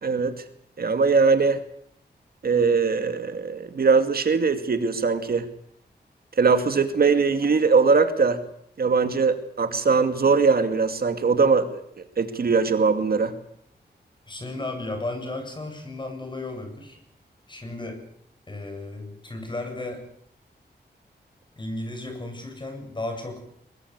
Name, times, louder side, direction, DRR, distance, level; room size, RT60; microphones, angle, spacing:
voice 1, 0.0-0.3 0.8-1.6 2.4-5.5 6.4-8.4 8.8-11.8 12.2-13.3, right 4 dB, 60° right, 9 dB, 2.4 m, -21 dB
voice 2, 14.3-17.0 17.5-18.0 18.5-20.1 21.6-23.4, left 2 dB, 25° left, 5 dB, 7.7 m, -34 dB
23.0 x 22.5 x 8.3 m, 0.69 s
wide cardioid pair, 140°, 18 cm